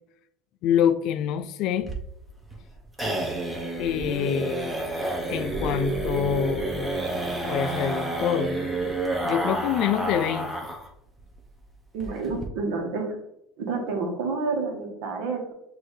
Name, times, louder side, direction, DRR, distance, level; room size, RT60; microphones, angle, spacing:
voice 1, 0.6-1.9 3.8-4.7 5.3-6.9 7.4-8.6 9.2-10.5, left 9 dB, 60° left, 0.3 m, -26 dB
sound 1, 1.8-10.9 11.2-11.3 11.6-11.7 12.0-12.5, right 2 dB, 10° right, 0.9 m, -29 dB
voice 2, 11.9-13.2 13.6-15.5, right 4 dB, 70° right, 1.2 m, -29 dB
6.2 x 2.7 x 3.1 m
supercardioid pair, 105°, 0 cm